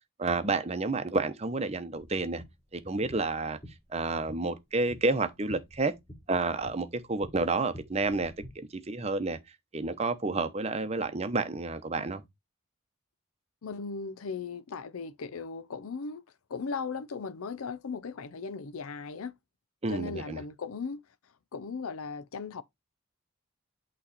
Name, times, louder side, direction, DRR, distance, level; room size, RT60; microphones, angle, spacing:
voice 1, 0.2-2.4 2.7-3.6 3.9-5.9 6.3-8.3 8.7-9.4 9.7-12.2 19.8-20.4, right 3 dB, 30° right, 0.8 m, -30 dB
sound 1, 2.0-8.5, equal, 30° left, 4.7 m, -50 dB
voice 2, 13.6-16.2 16.5-19.3 19.9-21.0 21.5-22.6, left 5 dB, 80° left, 0.6 m, -37 dB
8.5 x 3.2 x 4.0 m
head